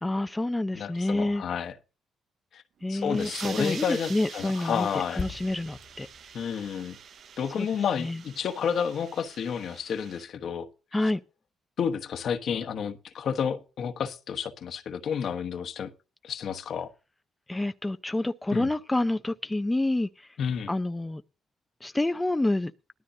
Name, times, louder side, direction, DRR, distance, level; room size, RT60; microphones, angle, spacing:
voice 1, 0.0-1.4 2.8-6.1 7.6-7.7 8.0-8.2 10.9-11.2 17.5-20.3 20.7-21.2 21.8-22.7, left 2 dB, 15° left, 0.5 m, -28 dB
voice 2, 0.7-1.7 2.5-2.6 2.9-5.2 6.3-7.0 7.4-10.7 11.8-15.9 16.2-16.9 18.5-18.7 20.4-20.7, left 7 dB, 65° left, 1.1 m, -31 dB
sound 1, 2.8-10.3, right 7 dB, 60° right, 0.6 m, -45 dB
sound 2, 5.2-8.8 9.1-9.3, left 4 dB, 35° left, 1.1 m, -43 dB
18.0 x 12.5 x 2.7 m
cardioid pair, 90°, 0 cm